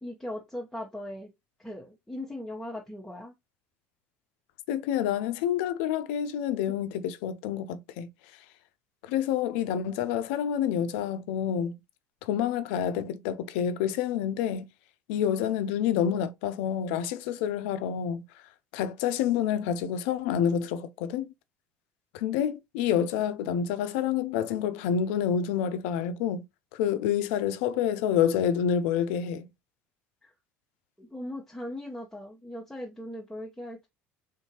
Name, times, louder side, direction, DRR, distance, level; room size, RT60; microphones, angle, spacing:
voice 1, 0.0-1.3 1.6-3.3 6.7-6.8 30.2-30.3 31.0-33.9, left 1 dB, 5° left, 1.0 m, -39 dB
voice 2, 4.7-8.1 9.0-11.7 12.2-14.7 15.1-18.2 18.7-21.3 22.1-26.4 26.7-29.5, left 9 dB, 75° left, 0.5 m, -28 dB
3.7 x 2.8 x 2.9 m
hypercardioid pair, 75°, 7 cm